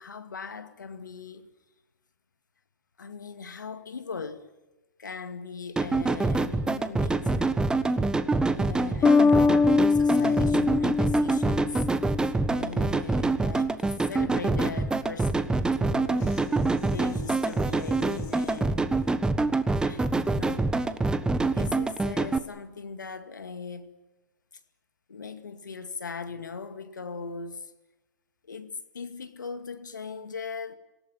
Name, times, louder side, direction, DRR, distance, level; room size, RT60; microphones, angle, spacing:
voice 1, 0.0-1.5 3.0-4.5 5.0-7.7 8.5-11.9 12.5-18.8 19.8-20.9 21.5-23.9 25.1-27.7 28.4-30.8, left 5 dB, 85° left, 2.2 m, -39 dB
sound 1, 5.8-22.4, right 3 dB, 10° right, 1.3 m, -26 dB
Bass guitar, 9.0-12.6, left 4 dB, 15° left, 0.8 m, -23 dB
sound 2, 10.1-20.7, left 6 dB, 40° left, 4.9 m, -47 dB
27.0 x 17.5 x 9.5 m
hypercardioid pair, 110°, 10 cm